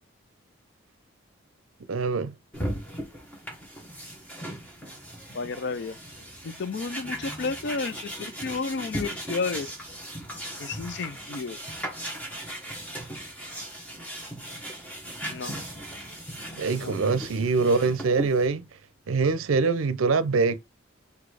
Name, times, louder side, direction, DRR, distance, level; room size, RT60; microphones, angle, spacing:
voice 1, 1.9-2.3 16.6-18.6 19.1-20.6, right 4 dB, 80° right, 0.5 m, -24 dB
sound 1, 2.5-18.5, right 1 dB, 5° left, 1.1 m, -38 dB
voice 2, 5.3-6.0 6.4-9.7 10.6-11.6 15.3-15.5 16.8-17.1, left 4 dB, 55° left, 0.4 m, -32 dB
4.1 x 2.7 x 4.7 m
head